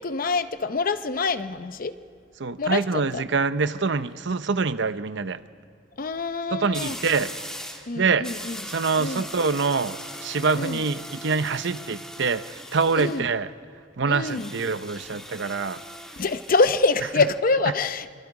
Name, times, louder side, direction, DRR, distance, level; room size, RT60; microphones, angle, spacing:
voice 1, 0.0-2.0 2.6-2.8 3.1-3.2 6.0-7.0 7.9-8.6 9.0-9.3 10.5-10.8 13.0-13.3 14.1-14.5 16.2-18.1, left 3 dB, 50° left, 12 dB, 0.7 m, -25 dB
voice 2, 2.4-5.4 6.5-7.3 7.9-8.3 8.7-13.5 14.0-15.8, right 4 dB, 70° right, 12 dB, 0.7 m, -25 dB
sound 1, 3.6-3.9 6.7-7.9 8.2-13.2 14.2-16.8, equal, 5° left, 1.9 m, -39 dB
27.0 x 23.5 x 4.9 m, 2.1 s
head